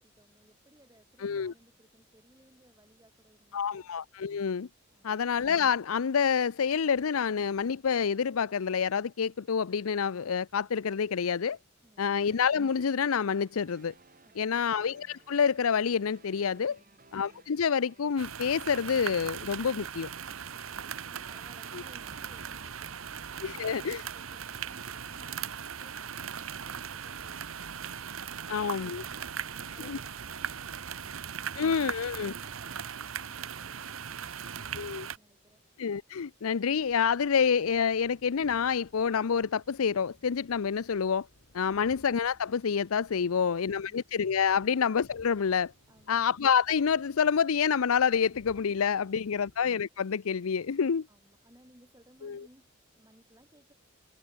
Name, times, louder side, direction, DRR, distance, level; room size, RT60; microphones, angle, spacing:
voice 1, 0.0-3.9 4.9-5.2 11.8-12.2 14.2-14.9 16.7-17.0 20.7-27.8 28.3-35.6 43.2-44.0 45.9-46.2 51.1-53.7, right 1 dB, 15° right, 4.0 m, -61 dB
voice 2, 1.2-1.5 3.5-4.7 5.0-11.6 12.0-13.9 14.4-16.8 17.1-20.1 23.4-24.0 28.5-29.0 29.8-30.0 31.6-32.3 34.8-35.1 35.8-41.3 41.5-45.7 46.1-51.0 52.2-52.4, left 6 dB, 85° left, 0.5 m, -28 dB
sound 1, 12.0-25.4, right 3 dB, 40° right, 3.9 m, -60 dB
sound 2, 18.2-35.2, right 7 dB, 75° right, 1.1 m, -39 dB
sound 3, 36.8-49.7, left 1 dB, 60° left, 4.8 m, -61 dB
head